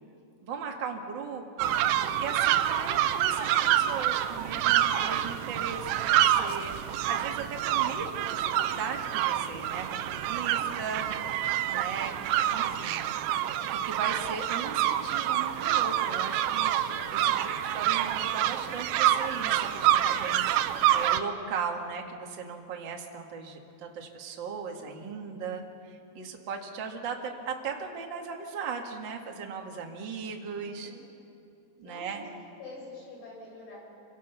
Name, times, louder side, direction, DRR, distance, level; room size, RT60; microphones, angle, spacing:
voice 1, 0.4-11.0 11.3-12.1 12.5-13.1 13.7-30.9 31.8-32.2, right 5 dB, 55° right, 2 dB, 1.3 m, -38 dB
sound 1, 1.6-21.2, right 11 dB, 80° right, 2.9 m, -27 dB
voice 2, 3.2-3.8 10.4-11.5 24.7-25.3 30.5-31.0 31.8-33.8, left 2 dB, 85° left, -4 dB, 10.0 m, -48 dB
27.5 x 24.0 x 5.9 m, 2.6 s
omnidirectional pair, 5.3 m